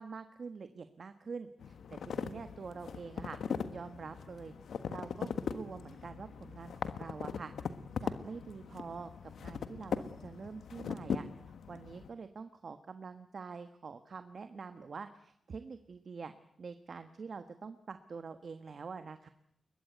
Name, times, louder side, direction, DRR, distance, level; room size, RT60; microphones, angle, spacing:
voice 1, 0.0-3.4 3.7-4.5 4.9-7.5 8.0-9.1 9.4-11.2 11.7-16.3 16.6-19.3, right 5 dB, 55° right, 9 dB, 1.4 m, -45 dB
sound 1, 1.6-12.1, left 6 dB, 80° left, 1.5 m, -40 dB
21.5 x 21.5 x 9.3 m, 0.71 s
wide cardioid pair, 100°, 0 cm